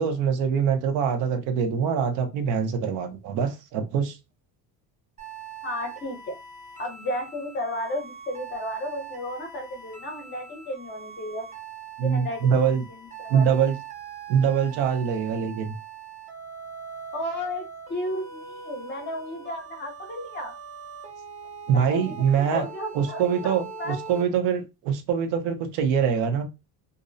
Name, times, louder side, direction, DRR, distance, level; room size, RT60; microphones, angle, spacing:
voice 1, 0.0-4.2 12.0-12.8 13.3-13.8 14.3-15.7 21.7-22.7 22.9-26.4, right 7 dB, 80° right, 0.8 m, -24 dB
sound 1, 5.2-24.2, right 6 dB, 20° right, 0.4 m, -42 dB
voice 2, 5.6-6.4 6.8-11.4 12.0-13.4 17.1-20.5 21.7-24.0, left 1 dB, 25° left, 0.6 m, -33 dB
2.5 x 2.0 x 2.5 m
cardioid pair, 175°, 43 cm